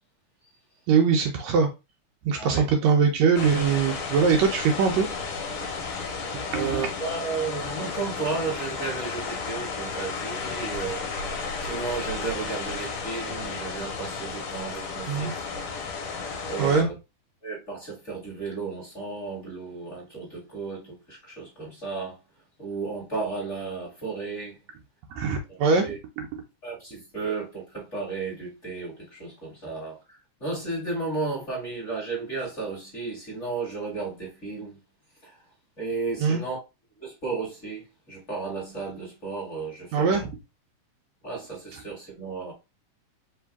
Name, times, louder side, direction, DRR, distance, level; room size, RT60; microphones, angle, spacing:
voice 1, 0.9-1.7 2.2-5.1 6.5-6.9 15.1-15.3 16.6-16.9 25.1-26.0 36.2-36.4 39.9-40.3, right 5 dB, 75° right, 1.8 m, -22 dB
voice 2, 2.4-2.7 6.5-15.3 16.4-16.9 17.4-22.2 22.6-24.6 25.5-26.0 26.6-34.8 35.2-35.4 35.8-36.6 37.0-40.2 41.2-42.5, right 4 dB, 25° left, 2.0 m, -33 dB
sound 1, 3.4-16.8, left 4 dB, 65° left, 2.1 m, -33 dB
4.8 x 3.0 x 3.4 m
omnidirectional pair, 3.5 m